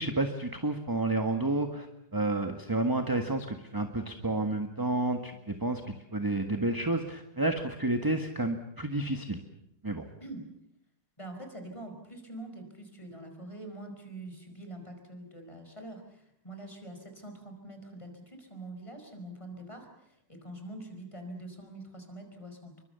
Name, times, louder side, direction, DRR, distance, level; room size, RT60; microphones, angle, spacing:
voice 1, 0.0-1.9 2.1-5.8 6.1-9.4 9.8-10.1, right 2 dB, 10° right, 6 dB, 1.5 m, -30 dB
voice 2, 11.2-22.8, right 1 dB, 15° left, 5 dB, 5.3 m, -45 dB
29.5 x 23.5 x 7.0 m, 0.80 s
omnidirectional pair, 1.9 m